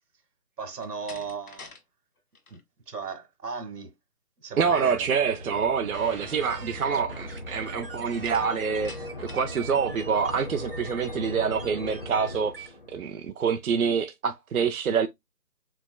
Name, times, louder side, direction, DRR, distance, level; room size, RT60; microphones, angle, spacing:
voice 1, 0.6-1.7 2.5-2.6 2.9-3.9 4.4-5.1, right 5 dB, 85° right, 1.3 m, -36 dB
Slam, 0.7-1.8 2.2-2.6 8.2-9.6, left 4 dB, 70° left, 1.6 m, -47 dB
sound 1, 4.6-13.1, left 1 dB, 35° left, 0.7 m, -39 dB
voice 2, 4.6-15.1, right 6 dB, 65° right, 0.6 m, -26 dB
sound 2, 5.9-12.7, right 4 dB, 35° right, 0.8 m, -45 dB
4.6 x 3.4 x 2.2 m
hypercardioid pair, 170°, 46 cm